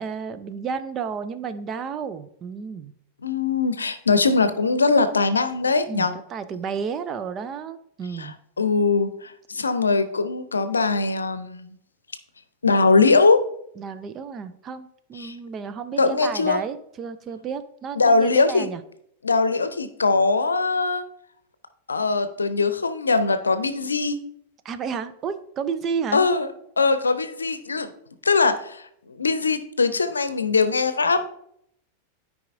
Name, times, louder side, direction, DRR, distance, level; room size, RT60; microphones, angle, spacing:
voice 1, 0.0-2.9 5.9-8.4 13.8-18.8 24.6-26.2, right 6 dB, 30° right, 12 dB, 0.6 m, -32 dB
voice 2, 3.2-6.1 8.2-8.3 8.6-11.8 12.6-13.4 15.2-15.3 16.0-16.6 18.0-18.7 19.2-21.0 21.9-24.2 26.1-26.5 26.8-27.9 28.2-31.3, left 4 dB, 75° left, 11 dB, 0.7 m, -21 dB
13.0 x 4.9 x 2.6 m, 0.70 s
figure-of-eight pair, 90°, 0 cm